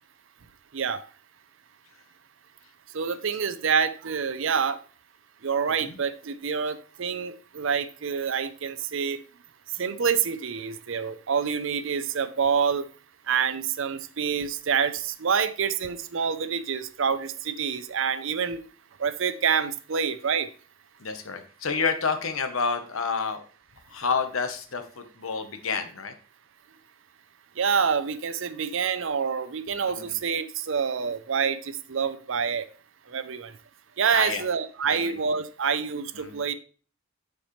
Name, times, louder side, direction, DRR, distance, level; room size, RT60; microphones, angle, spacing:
voice 1, 2.9-4.8 5.4-9.2 9.8-12.8 13.3-18.6 19.0-20.5 27.6-32.7 33.1-33.5 34.0-36.5, right 6 dB, 60° right, 13 dB, 0.6 m, -27 dB
voice 2, 21.0-23.4 23.9-26.1 29.9-30.2 34.1-34.4 34.8-35.2 36.1-36.4, left 5 dB, 70° left, 7 dB, 1.0 m, -29 dB
10.0 x 4.6 x 3.2 m, 0.39 s
head